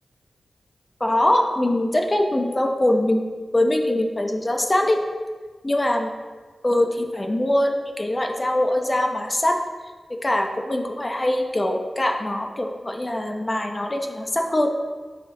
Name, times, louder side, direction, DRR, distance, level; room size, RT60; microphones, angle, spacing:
voice 1, 1.0-3.3 3.5-5.0 5.6-6.1 6.6-9.6 10.1-14.7, left 1 dB, 30° left, 3 dB, 0.7 m, -22 dB
6.0 x 4.9 x 3.7 m, 1.4 s
cardioid pair, 55°, 0 cm